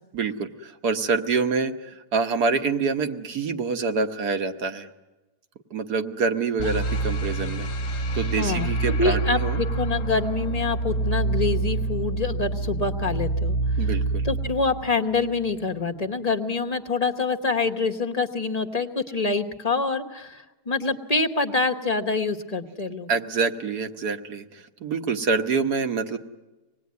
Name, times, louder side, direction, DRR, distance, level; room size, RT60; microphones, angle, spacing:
voice 1, 0.1-4.9 5.7-7.7 8.1-9.6 13.8-14.2 23.1-26.2, right 4 dB, 75° right, 6 dB, 1.8 m, -26 dB
sound 1, 6.6-15.7, right 2 dB, 55° left, 1.3 m, -27 dB
voice 2, 8.4-8.7 9.0-13.6 14.2-23.1, left 4 dB, 25° left, 5 dB, 1.0 m, -26 dB
26.0 x 19.5 x 9.5 m, 1.1 s
omnidirectional pair, 1.7 m